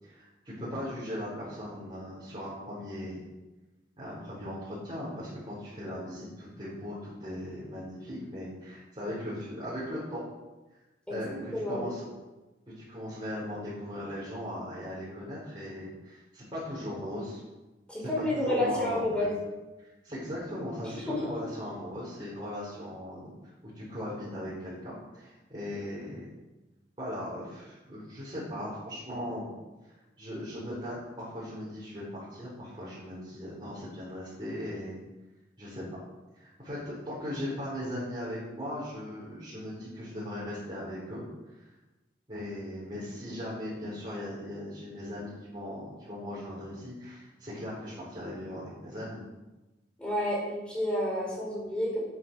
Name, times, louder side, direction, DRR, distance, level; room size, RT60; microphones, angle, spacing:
voice 1, 0.0-3.2 4.0-10.2 11.1-12.0 12.7-17.4 18.0-19.3 19.8-23.3 23.6-26.3 27.0-29.5 30.2-35.0 35.6-35.8 36.4-41.2 41.6-41.7 42.3-49.2, equal, 30° right, -9 dB, 4.6 m, -38 dB
voice 2, 11.5-11.8 17.9-19.3 21.1-21.2 50.0-52.0, left 1 dB, 5° left, -4 dB, 4.5 m, -30 dB
11.5 x 8.8 x 6.3 m, 1.1 s
head